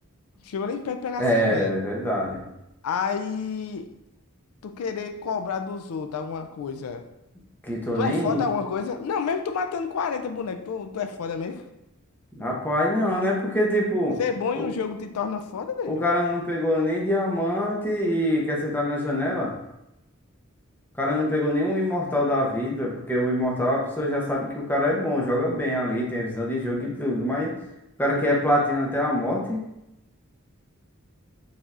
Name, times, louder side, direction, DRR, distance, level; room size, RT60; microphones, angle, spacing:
voice 1, 0.4-1.7 2.8-3.9 4.6-7.0 7.9-11.6 14.2-16.1, left 6 dB, 90° left, 8 dB, 0.4 m, -29 dB
voice 2, 1.2-2.4 7.6-8.4 12.3-14.2 14.6-14.7 15.9-19.5 21.0-27.5 28.0-29.6, left 1 dB, 10° left, -3 dB, 0.8 m, -24 dB
5.0 x 3.4 x 2.5 m, 0.88 s
head